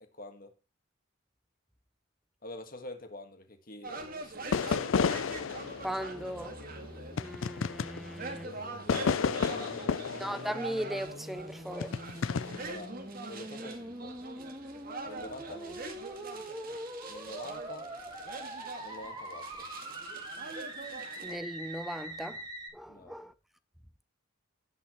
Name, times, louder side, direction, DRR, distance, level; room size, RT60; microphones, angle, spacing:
voice 1, 0.1-0.5 2.4-5.1 8.3-10.1 12.4-14.1 15.1-15.9 17.1-17.9 18.8-19.7 22.9-23.2, left 2 dB, 45° left, 1.6 m, -47 dB
sound 1, 3.8-21.4, right 3 dB, 45° right, 1.8 m, -44 dB
sound 2, 4.5-8.4 8.9-11.3 11.8-12.7, left 6 dB, 75° left, 0.4 m, -32 dB
sound 3, 5.1-22.7, right 1 dB, 20° right, 2.1 m, -44 dB
voice 2, 5.8-6.6 7.2-8.5 10.1-12.0 21.2-22.4 22.7-23.3, equal, ahead, 0.5 m, -38 dB
17.0 x 5.7 x 3.1 m
head